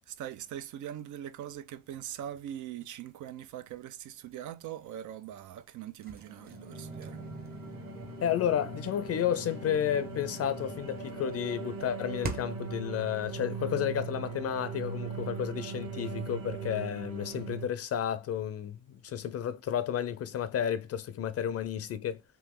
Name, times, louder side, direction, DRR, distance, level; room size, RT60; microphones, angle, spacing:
voice 1, 0.1-7.2, right 11 dB, 75° right, 0.5 m, -42 dB
sound 1, 6.0-12.7, equal, 30° right, 0.9 m, -43 dB
sound 2, 6.7-17.7, right 6 dB, 60° right, 1.0 m, -40 dB
voice 2, 8.2-22.2, left 9 dB, 55° left, 0.4 m, -32 dB
3.0 x 2.8 x 3.5 m
cardioid pair, 90°, 30 cm